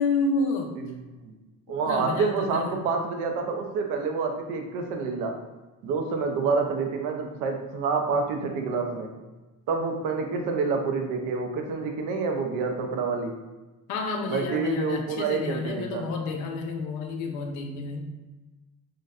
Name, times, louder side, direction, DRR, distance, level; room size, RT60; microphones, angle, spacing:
voice 1, 0.0-0.7 1.8-2.7 13.9-18.1, left 3 dB, 75° left, 2 dB, 0.6 m, -29 dB
voice 2, 0.8-1.3 1.7-5.3 5.8-9.1 9.7-13.3 14.3-16.1, right 4 dB, 90° right, 3 dB, 0.6 m, -28 dB
3.8 x 2.1 x 2.5 m, 1.1 s
cardioid pair, 175°, 31 cm